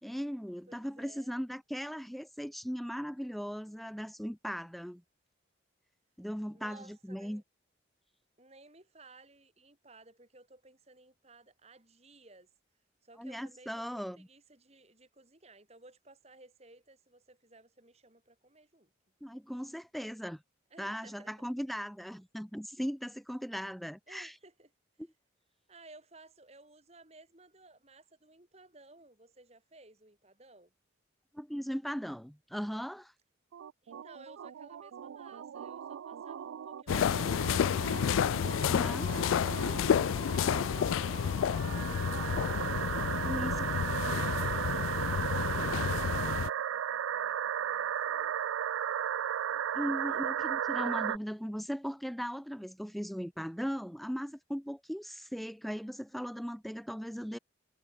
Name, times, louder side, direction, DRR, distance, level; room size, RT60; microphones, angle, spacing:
voice 1, 0.0-5.0 6.2-7.4 13.2-14.3 19.2-20.4 20.8-24.3 31.3-33.1 38.6-39.1 43.2-43.8 49.7-57.4, equal, ahead, 1.5 m, -38 dB
voice 2, 0.7-1.4 6.5-7.4 8.4-12.5 13.0-18.9 20.7-21.5 24.1-24.7 25.7-30.7 33.8-38.4 39.0-42.4 43.1-45.8 46.1-48.4 49.8-50.5, right 2 dB, 30° right, 3.3 m, -58 dB
sound 1, 33.5-51.2, right 9 dB, 90° right, 0.3 m, -35 dB
sound 2, 36.9-46.5, left 8 dB, 85° left, 0.3 m, -30 dB
head